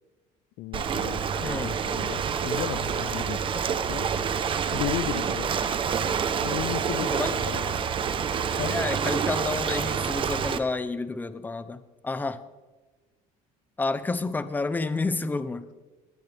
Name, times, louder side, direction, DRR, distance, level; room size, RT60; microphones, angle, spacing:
voice 1, 0.6-3.6 3.9-4.1 4.7-5.6 6.4-7.8 8.6-8.8, left 16 dB, 70° left, 0.4 m, -35 dB
Ocean, 0.7-10.6, right 7 dB, 35° right, 1.0 m, -27 dB
voice 2, 1.4-1.8 7.0-7.4 8.6-12.4 13.8-15.6, left 3 dB, 10° left, 0.8 m, -30 dB
20.0 x 20.0 x 3.6 m
cardioid pair, 140°, 14 cm